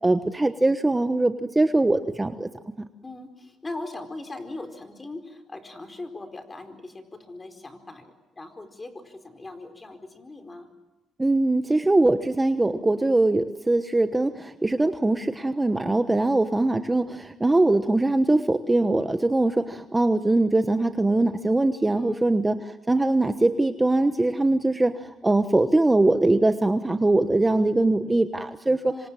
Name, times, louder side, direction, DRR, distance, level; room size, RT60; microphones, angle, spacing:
voice 1, 0.0-2.5 11.2-22.6 22.9-28.9, right 2 dB, 15° right, 9 dB, 1.2 m, -22 dB
voice 2, 3.0-10.7 16.1-16.5 21.8-22.3 28.9-29.1, left 2 dB, 25° left, 7 dB, 4.5 m, -40 dB
26.5 x 26.0 x 7.7 m, 1.1 s
cardioid pair, 90°, 0 cm